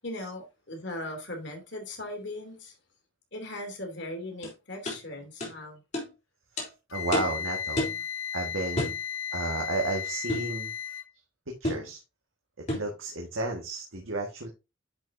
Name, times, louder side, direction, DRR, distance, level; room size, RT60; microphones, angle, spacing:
voice 1, 0.0-2.7 3.3-5.8, left 1 dB, 60° left, 2.9 m, -38 dB
sound 1, 4.4-4.5 4.8-5.0 5.4-5.5 5.9-6.1 6.6-6.7 7.1-7.4 7.8-8.0 8.8-9.0 10.3-10.5 11.6-11.9 12.7-12.9, left 1 dB, 35° left, 3.4 m, -30 dB
Wind instrument woodwind instrument, 6.9-11.1, left 8 dB, 85° left, 0.8 m, -35 dB
voice 2, 6.9-7.8 8.3-8.9 9.3-10.7 11.5-12.0 12.6-14.5, right 2 dB, 80° right, 1.6 m, -32 dB
10.5 x 5.6 x 2.7 m
head